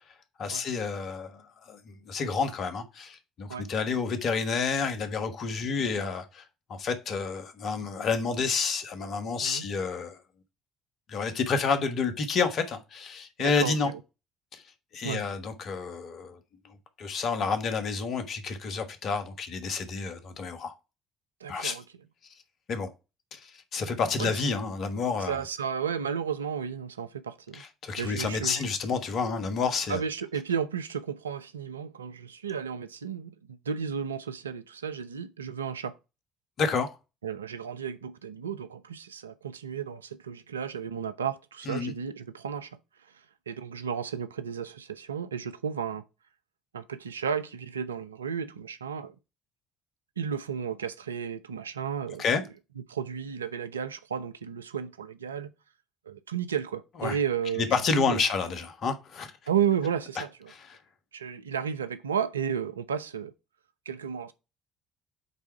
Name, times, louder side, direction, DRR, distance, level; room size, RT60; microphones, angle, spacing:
voice 1, 0.4-1.4 1.7-6.4 6.7-10.2 11.1-13.9 14.5-14.6 14.9-16.4 17.0-20.7 21.5-21.8 22.7-22.9 23.3-25.4 27.5-30.0 36.6-36.9 41.7-41.9 52.2-52.4 57.0-57.2 57.6-59.3 60.5-60.8, left 5 dB, 50° left, 1.3 m, -29 dB
voice 2, 13.4-14.0 15.0-15.2 21.4-21.8 24.2-24.3 25.2-27.6 28.0-28.7 29.9-35.9 37.2-42.8 43.5-46.0 46.7-49.1 50.2-52.2 52.9-55.5 56.1-58.2 59.5-60.5 61.1-63.3 63.9-64.3, right 7 dB, 80° right, 0.4 m, -33 dB
8.2 x 3.5 x 4.6 m
figure-of-eight pair, 50°, 0 cm